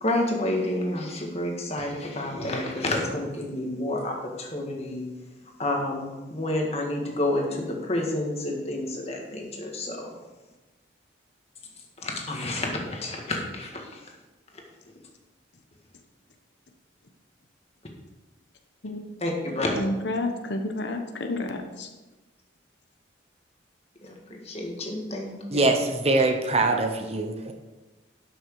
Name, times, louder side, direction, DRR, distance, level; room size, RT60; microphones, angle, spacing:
voice 1, 0.0-5.1 5.6-10.1 12.0-14.0 19.2-19.7 24.0-25.7, left 1 dB, 30° left, 0 dB, 1.8 m, -29 dB
voice 2, 19.8-21.9, left 2 dB, 60° left, 4 dB, 1.0 m, -30 dB
voice 3, 25.5-27.5, right 2 dB, 30° right, 4 dB, 0.9 m, -23 dB
12.0 x 6.4 x 4.7 m, 1.1 s
head